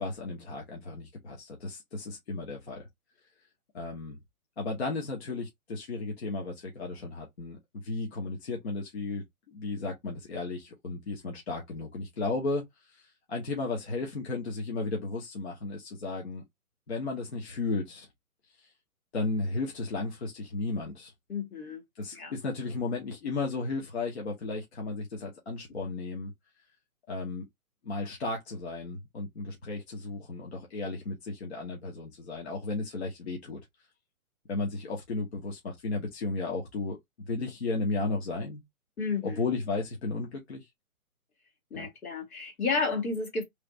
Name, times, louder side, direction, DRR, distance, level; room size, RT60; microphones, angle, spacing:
voice 1, 0.0-2.9 3.7-4.2 4.6-12.6 12.9-16.4 16.9-18.1 19.1-21.1 22.0-26.3 27.1-27.4 27.8-33.6 34.5-38.6 39.2-40.6 41.7-41.9, left 3 dB, 45° left, 1.0 m, -34 dB
voice 2, 21.3-21.8 22.1-22.3 39.0-39.5 41.7-43.4, left 4 dB, 75° left, 2.1 m, -31 dB
3.3 x 2.5 x 3.2 m
hypercardioid pair, 170°, 43 cm